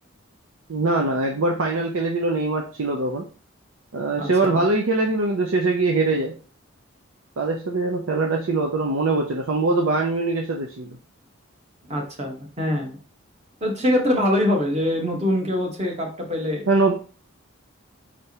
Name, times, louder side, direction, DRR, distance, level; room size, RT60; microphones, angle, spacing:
voice 1, 0.7-3.3 3.9-6.3 7.4-11.0 16.7-16.9, right 3 dB, 90° right, 1 dB, 0.6 m, -22 dB
voice 2, 4.1-4.6 11.9-13.0 13.6-16.7, left 1 dB, 35° right, 2 dB, 1.2 m, -24 dB
5.1 x 3.4 x 2.8 m, 0.38 s
head